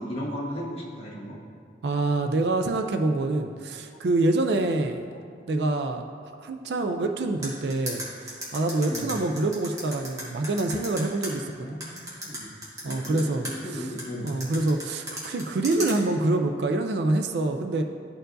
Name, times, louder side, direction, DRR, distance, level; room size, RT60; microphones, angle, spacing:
voice 1, 0.0-1.4 8.9-9.1 11.6-12.5 12.9-14.3, equal, 35° left, -7 dB, 1.3 m, -36 dB
voice 2, 1.8-5.0 5.5-6.0 6.4-11.8 12.8-13.9 14.2-17.8, right 2 dB, 70° right, 5 dB, 0.4 m, -26 dB
sound 1, 7.4-11.3 11.8-13.5 14.0-15.9, equal, 20° right, 1.4 m, -34 dB
12.0 x 4.5 x 2.6 m, 2.2 s
head